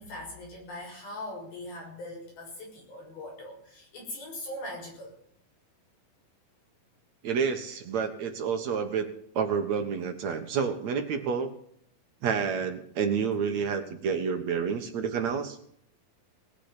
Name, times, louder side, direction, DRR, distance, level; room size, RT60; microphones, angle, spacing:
voice 1, 0.0-5.1, left 1 dB, 90° left, -1 dB, 8.5 m, -41 dB
voice 2, 7.2-9.1 9.3-11.5 12.2-15.6, right 6 dB, 60° right, 7 dB, 2.4 m, -29 dB
19.0 x 7.5 x 9.9 m, 0.65 s
omnidirectional pair, 4.2 m